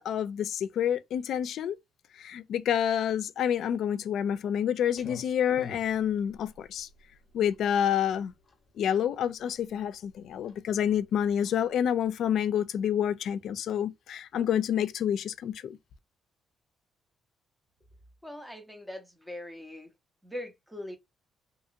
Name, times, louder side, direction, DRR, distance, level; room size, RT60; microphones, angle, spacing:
voice 1, 0.0-1.8 2.2-6.9 7.3-8.3 8.8-15.8, left 9 dB, 65° left, 0.4 m, -28 dB
Clock, 4.9-12.4, left 5 dB, 30° left, 0.8 m, -49 dB
voice 2, 18.2-19.9 20.2-21.0, left 1 dB, 5° right, 0.6 m, -41 dB
2.9 x 2.7 x 2.5 m
cardioid pair, 150°, 0 cm